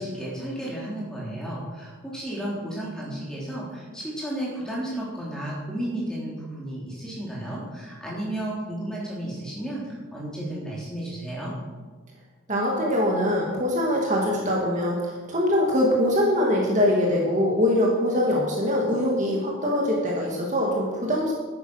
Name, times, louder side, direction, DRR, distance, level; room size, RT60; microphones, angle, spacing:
voice 1, 0.0-11.5, right 1 dB, 5° left, -6 dB, 3.4 m, -33 dB
voice 2, 12.5-21.3, left 1 dB, 35° right, -2 dB, 2.0 m, -23 dB
10.5 x 9.6 x 6.3 m, 1.4 s
head